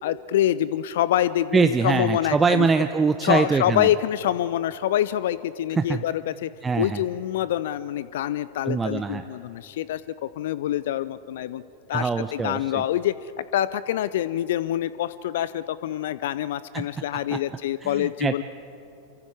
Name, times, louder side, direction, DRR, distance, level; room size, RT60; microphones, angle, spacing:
voice 1, 0.0-2.7 3.2-6.5 6.8-11.6 11.9-18.4, left 12 dB, 55° left, 17 dB, 0.4 m, -26 dB
voice 2, 1.5-3.9 5.8-6.0 6.6-7.0 8.7-9.2 11.9-12.8 16.7-16.8 17.3-17.4 17.8-18.4, right 4 dB, 15° right, 9 dB, 0.6 m, -23 dB
27.0 x 24.0 x 4.8 m, 3.0 s
figure-of-eight pair, 90°, 0 cm